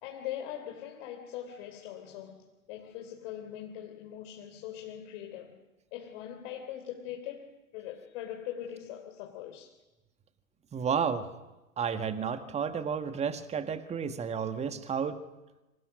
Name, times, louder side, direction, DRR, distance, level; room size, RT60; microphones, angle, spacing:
voice 1, 0.0-5.6 5.9-9.8, left 10 dB, 45° left, 3.4 m, -41 dB
voice 2, 10.7-11.3 11.8-15.2, right 6 dB, 15° right, 1.7 m, -31 dB
28.0 x 26.5 x 6.3 m
figure-of-eight pair, 105°, 42 cm